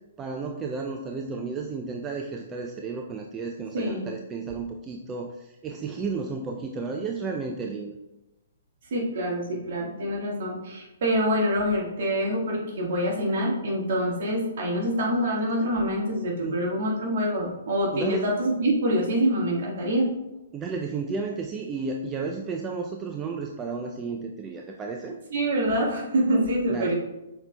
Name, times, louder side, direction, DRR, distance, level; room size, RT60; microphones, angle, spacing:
voice 1, 0.2-7.9 16.4-16.6 17.9-18.3 20.5-25.2 26.7-26.9, right 4 dB, 20° right, 2 dB, 0.4 m, -33 dB
voice 2, 3.7-4.1 8.9-20.1 25.3-26.9, equal, 55° right, -3 dB, 1.5 m, -25 dB
5.9 x 4.0 x 2.2 m, 0.96 s
figure-of-eight pair, 125°, 0 cm